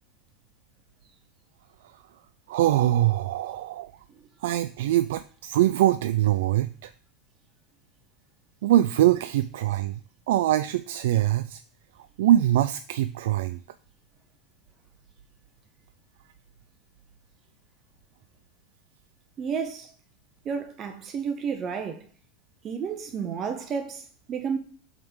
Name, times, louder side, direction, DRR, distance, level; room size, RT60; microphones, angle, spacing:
voice 1, 2.5-3.9 4.4-6.9 8.6-10.0 10.3-11.6 12.2-13.6, right 13 dB, 80° right, 0.4 m, -23 dB
voice 2, 19.4-19.9 20.4-22.0 22.6-24.6, right 6 dB, 25° right, 0.7 m, -31 dB
7.8 x 3.6 x 5.5 m
supercardioid pair, 165°, 0 cm